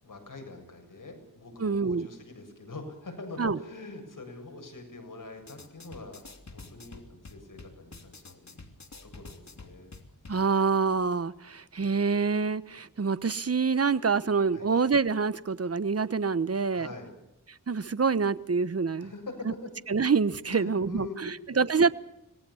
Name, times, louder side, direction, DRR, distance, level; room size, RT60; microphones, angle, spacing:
voice 1, 0.0-6.2 6.5-8.6 9.0-9.9 14.5-14.7 16.7-17.1 19.0-19.3 19.6-19.7 20.4-21.6, left 2 dB, 70° left, 4 dB, 7.5 m, -44 dB
voice 2, 1.6-2.1 3.4-3.6 10.3-16.9 17.7-19.1 19.9-21.9, right 5 dB, 45° right, 16 dB, 1.1 m, -26 dB
sound 1, 5.4-10.4, left 3 dB, 55° left, 3.1 m, -49 dB
26.0 x 20.5 x 7.2 m, 0.87 s
wide cardioid pair, 65°, 33 cm